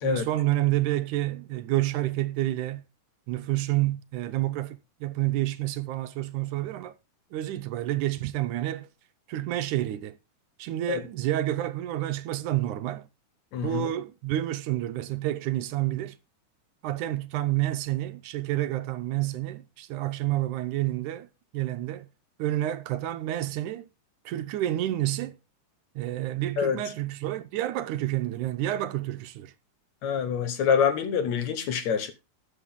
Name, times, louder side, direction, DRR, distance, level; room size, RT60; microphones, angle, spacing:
voice 1, 0.0-2.9 3.3-7.0 7.3-8.9 9.3-10.2 10.6-13.1 13.6-16.2 16.8-21.3 21.5-22.1 22.4-23.9 24.3-25.4 26.0-29.5, right 14 dB, 75° right, 2.2 m, -29 dB
voice 2, 13.5-13.9 26.6-26.8 30.0-32.1, left 7 dB, 65° left, 2.3 m, -26 dB
13.0 x 8.9 x 3.7 m
omnidirectional pair, 3.7 m